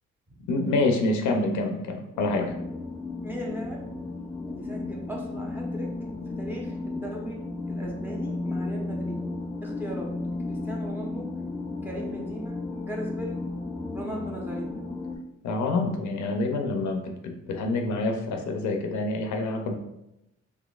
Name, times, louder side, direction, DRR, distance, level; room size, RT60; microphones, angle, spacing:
voice 1, 0.5-2.4 15.4-19.8, left 2 dB, 70° left, 3 dB, 0.6 m, -27 dB
sound 1, 2.1-15.2, left 2 dB, 10° left, 0.4 m, -34 dB
voice 2, 3.2-4.0 4.4-7.4 7.7-9.2 9.6-10.1 10.4-11.3 11.8-13.4 13.9-14.7, equal, 5° right, -1 dB, 0.8 m, -38 dB
3.9 x 2.8 x 2.3 m, 0.88 s
cardioid pair, 90°, 30 cm